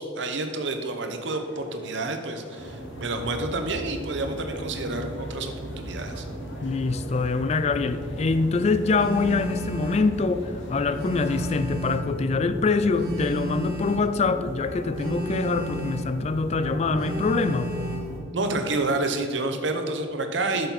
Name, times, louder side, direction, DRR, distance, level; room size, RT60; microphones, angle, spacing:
voice 1, 0.0-6.3 18.3-20.7, right 2 dB, 70° right, 6 dB, 0.8 m, -29 dB
sound 1, 0.9-11.6, left 1 dB, 70° left, 0.9 m, -47 dB
sound 2, 2.6-18.2, equal, 35° right, 1.4 m, -37 dB
voice 2, 6.6-17.8, left 4 dB, 35° left, 12 dB, 0.3 m, -24 dB
Telephone, 8.9-10.1 10.9-12.1 12.9-14.1 14.9-16.1 17.0-18.1, equal, 50° right, 1.5 m, -33 dB
7.9 x 6.7 x 4.1 m, 2.2 s
head